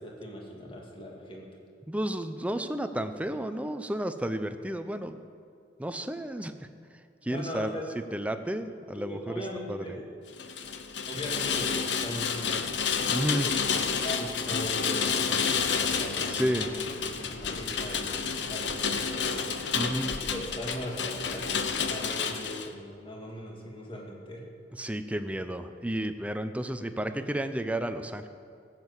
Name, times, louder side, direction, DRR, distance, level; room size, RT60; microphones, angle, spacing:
voice 1, 0.0-1.4 7.3-7.8 8.9-10.1 11.1-12.6 13.4-16.8 17.3-19.5 19.9-24.4, equal, 30° left, -2 dB, 2.2 m, -39 dB
voice 2, 1.9-5.2 5.8-6.7 7.2-7.7 8.1-9.4 9.7-9.8 13.1-13.5 16.3-16.7 19.7-20.1 24.7-28.3, right 1 dB, 5° right, 9 dB, 0.6 m, -32 dB
Rain, 10.3-22.7, left 6 dB, 70° left, 0.9 m, -30 dB
16.5 x 7.5 x 8.2 m, 2.4 s
head